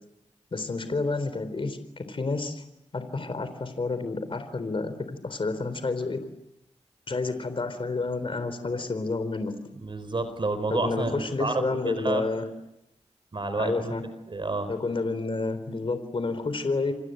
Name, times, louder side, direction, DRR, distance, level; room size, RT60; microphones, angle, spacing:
voice 1, 0.5-2.6 2.9-6.2 7.1-9.6 10.7-12.5 13.6-14.0 14.7-16.9, left 3 dB, 50° left, 11 dB, 3.9 m, -30 dB
voice 2, 9.7-12.3 13.3-13.9 14.3-14.7, right 3 dB, 45° right, 11 dB, 4.2 m, -29 dB
29.5 x 26.0 x 7.9 m, 0.85 s
wide cardioid pair, 85°, 12 cm